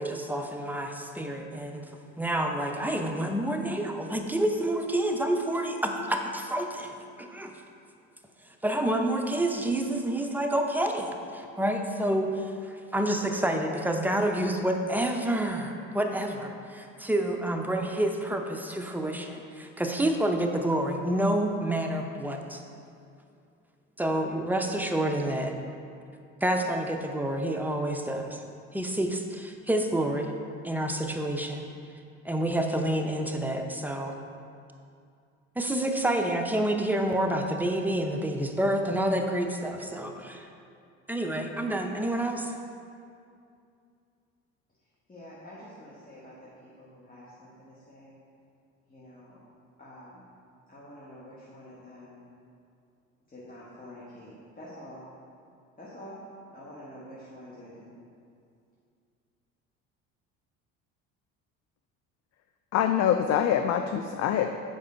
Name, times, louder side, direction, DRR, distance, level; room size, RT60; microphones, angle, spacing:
voice 1, 0.0-1.9 2.2-7.6 8.6-22.6 24.0-25.5 26.4-28.4 28.7-30.3 30.6-31.6 32.2-34.2 35.6-40.5 41.1-42.6, right 1 dB, 5° right, 3 dB, 0.8 m, -28 dB
voice 2, 45.1-46.3 46.8-48.2 48.9-49.4 49.8-50.2 50.7-52.2 53.3-55.0 55.8-56.2 56.5-57.9, left 1 dB, 20° left, -8 dB, 1.7 m, -47 dB
voice 3, 62.7-64.5, left 9 dB, 45° left, 7 dB, 0.4 m, -24 dB
7.4 x 5.0 x 4.5 m, 2.4 s
hypercardioid pair, 60°, 39 cm